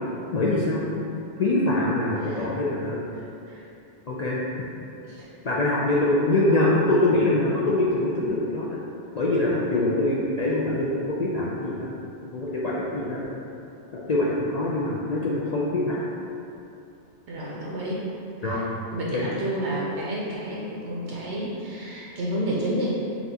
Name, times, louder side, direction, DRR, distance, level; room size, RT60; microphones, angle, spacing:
voice 1, 0.3-1.1 1.4-3.0 4.1-4.4 5.4-8.7 9.1-11.9 12.3-13.3 13.9-16.0 18.4-18.6 19.1-19.3, left 2 dB, 60° left, -6 dB, 0.4 m, -24 dB
voice 2, 2.2-2.5 3.1-3.7 5.0-5.3 17.3-18.0 18.4-18.6 18.9-23.0, right 1 dB, 75° right, -5 dB, 0.9 m, -30 dB
5.7 x 2.4 x 2.7 m, 2.7 s
omnidirectional pair, 1.2 m